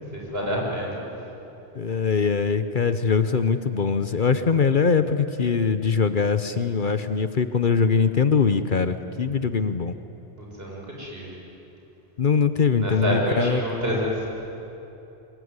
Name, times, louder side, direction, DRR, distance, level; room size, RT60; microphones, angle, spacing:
voice 1, 0.1-1.1 10.4-11.4 12.8-14.3, equal, 60° right, -3 dB, 6.6 m, -28 dB
voice 2, 1.8-9.9 12.2-13.8, left 5 dB, 50° left, 10 dB, 1.0 m, -22 dB
24.5 x 22.5 x 9.7 m, 3.0 s
omnidirectional pair, 1.1 m